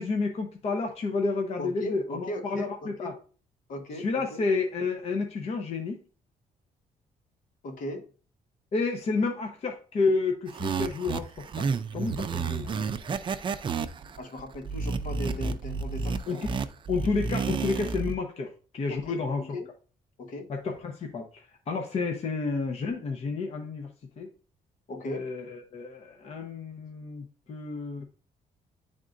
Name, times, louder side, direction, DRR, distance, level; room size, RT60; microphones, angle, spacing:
voice 1, 0.0-3.1 4.0-6.0 8.7-12.9 16.3-16.5 16.9-19.4 20.5-23.9 24.2-24.3 25.0-28.0, left 4 dB, 45° left, 3 dB, 0.8 m, -30 dB
voice 2, 1.6-3.1 3.7-4.4 7.6-8.1 14.2-16.4 18.9-19.7 20.2-20.5 24.9-25.3, left 1 dB, 65° left, 5 dB, 1.3 m, -37 dB
sound 1, 10.5-18.1, right 5 dB, 35° right, 0.5 m, -31 dB
10.0 x 3.6 x 2.6 m, 0.38 s
cardioid pair, 125°, 15 cm